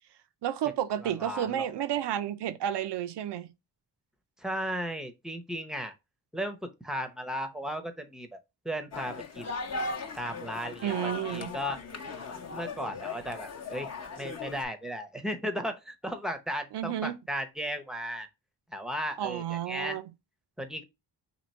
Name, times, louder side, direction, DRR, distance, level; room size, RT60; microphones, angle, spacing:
voice 1, 0.4-3.5 10.8-11.5 16.7-17.2 19.2-20.0, right 11 dB, 70° right, 0.6 m, -31 dB
voice 2, 1.0-1.7 4.4-5.9 6.3-8.4 8.6-9.5 10.2-11.8 12.5-13.9 14.2-18.3 18.7-20.0 20.6-20.8, equal, ahead, 0.7 m, -35 dB
sound 1, 8.9-14.6, left 3 dB, 35° left, 0.8 m, -38 dB
3.0 x 2.8 x 4.1 m
cardioid pair, 75°, 43 cm